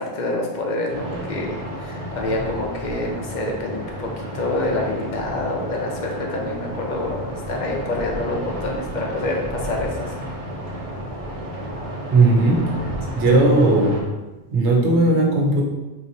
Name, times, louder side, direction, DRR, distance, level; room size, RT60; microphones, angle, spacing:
voice 1, 0.0-10.1, left 2 dB, 50° left, 0 dB, 0.7 m, -27 dB
sound 1, 0.9-14.0, right 1 dB, 35° right, 0.7 m, -32 dB
voice 2, 12.1-12.7 13.1-14.0 14.5-15.6, right 2 dB, 75° right, -1 dB, 1.0 m, -16 dB
4.9 x 2.8 x 2.6 m, 1.1 s
omnidirectional pair, 1.2 m